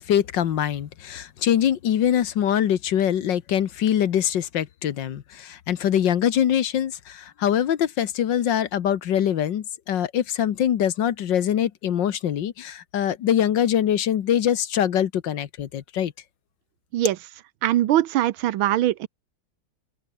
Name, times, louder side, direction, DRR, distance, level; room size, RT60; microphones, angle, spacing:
voice 1, 0.1-16.1, left 10 dB, 65° left, 1.7 m, -23 dB
voice 2, 17.6-19.1, right 13 dB, 80° right, 1.6 m, -21 dB
omnidirectional pair, 2.2 m